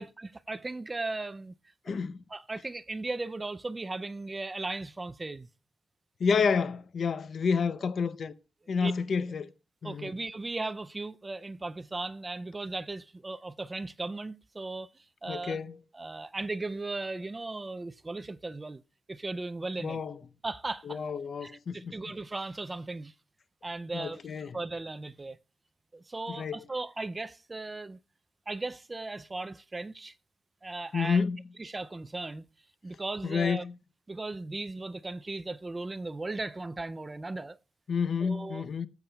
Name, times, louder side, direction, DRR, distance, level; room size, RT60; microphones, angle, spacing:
voice 1, 0.0-1.5 1.9-2.0 2.3-5.5 8.7-8.9 9.8-15.6 15.9-18.8 19.1-20.0 20.4-21.0 21.4-23.1 23.6-24.2 24.5-25.4 25.9-28.0 28.5-30.1 30.6-31.2 31.6-32.5 32.8-33.6 34.1-37.6 38.2-38.6, right 2 dB, 20° right, 0.4 m, -37 dB
voice 2, 1.9-2.2 6.2-8.3 8.7-9.5 9.8-10.1 15.3-15.8 19.8-20.2 20.8-22.0 23.9-24.6 26.3-26.6 30.9-31.4 33.2-33.7 37.9-38.9, left 5 dB, 50° left, 0.6 m, -29 dB
18.5 x 8.3 x 2.3 m
cardioid pair, 115°, 0 cm